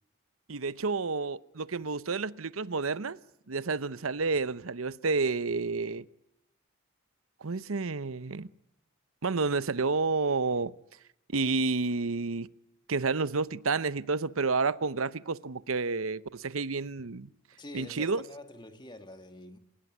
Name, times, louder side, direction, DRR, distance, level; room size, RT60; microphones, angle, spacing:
voice 1, 0.5-3.2 3.5-6.0 7.4-8.5 9.2-10.7 11.3-12.5 12.9-17.3 17.7-18.2, right 4 dB, 85° right, 0.9 m, -30 dB
voice 2, 17.5-19.6, left 1 dB, 20° left, 2.1 m, -46 dB
28.0 x 17.5 x 9.7 m
head